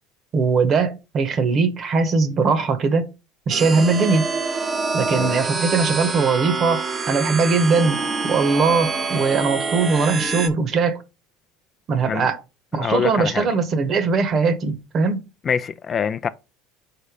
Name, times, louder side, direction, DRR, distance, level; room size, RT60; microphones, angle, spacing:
voice 1, 0.3-3.1 3.5-4.3 4.9-8.0 8.2-11.0 11.9-12.4 12.7-15.2, right 4 dB, 45° right, 1.2 m, -20 dB
sound 1, 3.5-10.5, right 4 dB, 25° right, 0.9 m, -26 dB
voice 2, 12.8-13.5 15.4-16.3, left 7 dB, 35° left, 0.5 m, -24 dB
5.0 x 4.2 x 5.0 m
supercardioid pair, 90°, 0 cm